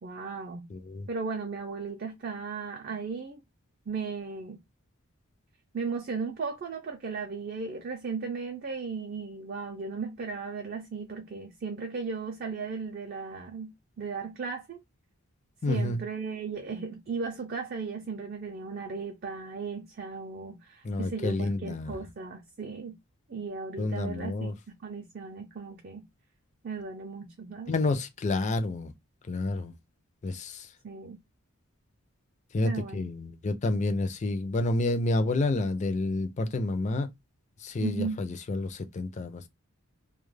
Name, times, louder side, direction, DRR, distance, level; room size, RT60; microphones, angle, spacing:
voice 1, 0.0-0.7 1.1-3.4 3.9-4.6 5.7-14.8 15.7-22.9 23.3-24.5 24.8-26.0 26.6-27.7 30.8-31.2 32.6-33.1 37.8-38.2, right 4 dB, 45° right, 0.4 m, -36 dB
voice 2, 0.7-1.1 15.6-16.0 20.8-22.0 23.8-24.5 27.7-28.9 29.3-29.7 30.2-30.7 32.5-37.1 37.6-39.5, left 2 dB, 35° left, 0.4 m, -29 dB
2.2 x 2.0 x 3.2 m
head